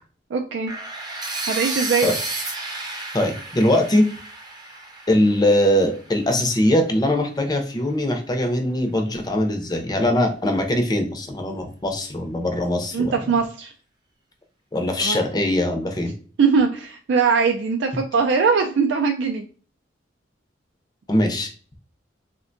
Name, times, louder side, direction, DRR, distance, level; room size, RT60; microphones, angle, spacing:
voice 1, 0.3-0.7 1.5-2.1 12.9-13.7 15.0-15.2 16.4-19.4, right 5 dB, 70° right, 2 dB, 0.4 m, -21 dB
sound 1, 0.7-6.6, right 2 dB, 20° right, 0.6 m, -32 dB
voice 2, 3.1-4.0 5.1-13.1 14.7-16.1 21.1-21.5, left 1 dB, 20° left, 4 dB, 0.5 m, -21 dB
3.5 x 2.2 x 2.5 m, 0.42 s
head